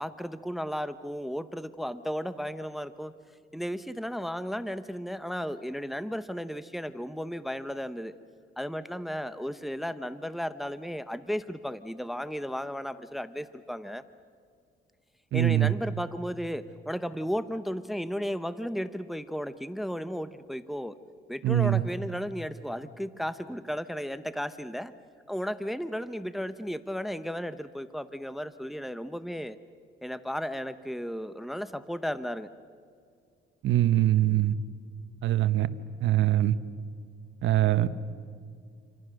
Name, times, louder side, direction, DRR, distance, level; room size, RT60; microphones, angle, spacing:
voice 1, 0.0-3.1 3.5-8.2 8.6-14.0 15.3-21.0 21.3-24.9 25.3-29.6 30.0-32.5, equal, ahead, 12 dB, 0.9 m, -34 dB
voice 2, 15.3-15.7 21.4-21.8 33.6-34.5 35.2-35.7 36.0-36.5 37.4-37.9, right 13 dB, 75° right, 13 dB, 1.1 m, -23 dB
29.0 x 25.5 x 6.5 m, 2.2 s
cardioid pair, 90°, 20 cm